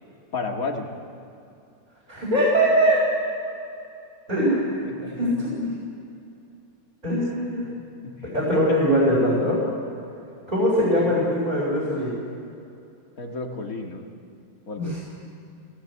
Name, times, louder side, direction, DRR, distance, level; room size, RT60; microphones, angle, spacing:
voice 1, 0.3-0.9 4.9-5.4 7.6-7.7 8.0-8.3 13.2-14.0 14.7-15.0, left 3 dB, 50° left, 2 dB, 2.3 m, -32 dB
voice 2, 2.1-3.0 4.3-4.7 5.2-5.7 7.0-7.7 8.2-9.6 10.5-12.1 14.8-15.0, equal, 20° right, -7 dB, 4.9 m, -21 dB
20.5 x 17.5 x 8.3 m, 2.6 s
omnidirectional pair, 2.0 m